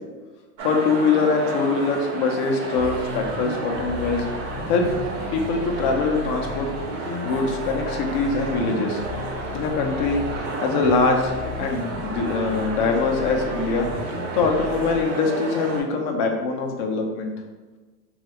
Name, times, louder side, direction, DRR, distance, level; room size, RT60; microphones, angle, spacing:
voice 1, 0.6-4.3 4.7-5.0 5.3-6.7 7.0-9.0 9.5-13.9 14.3-17.3, left 4 dB, 35° left, 3 dB, 0.4 m, -23 dB
sound 1, 0.6-15.8, right 2 dB, 60° right, 0.9 m, -32 dB
sound 2, 2.7-15.0, left 1 dB, 30° right, 0.4 m, -34 dB
3.1 x 2.4 x 2.8 m, 1.3 s
hypercardioid pair, 125°, 46 cm